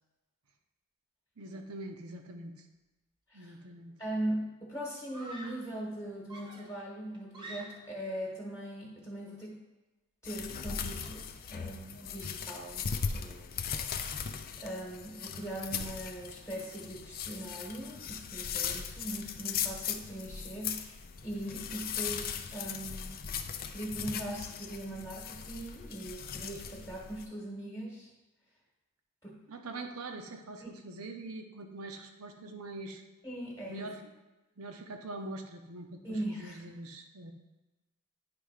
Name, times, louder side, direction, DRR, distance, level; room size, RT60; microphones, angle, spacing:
voice 1, 1.4-2.5 3.3-3.9 29.5-33.0 33.7-34.0 34.6-37.3, right 2 dB, 75° right, 5 dB, 0.8 m, -43 dB
Screaming, 3.6-4.0 5.1-5.7 6.3-8.0, right 1 dB, 20° right, 1.0 m, -48 dB
voice 2, 4.0-9.6 10.2-11.2 11.5-12.8 13.1-14.1 14.6-23.2 23.7-28.1 29.2-29.4 30.6-30.7 33.2-33.9 36.0-36.6, right 1 dB, 15° left, -4 dB, 1.3 m, -40 dB
sound 1, 10.2-27.2, left 7 dB, 40° left, 0.5 m, -38 dB
9.6 x 3.4 x 4.9 m, 1.1 s
head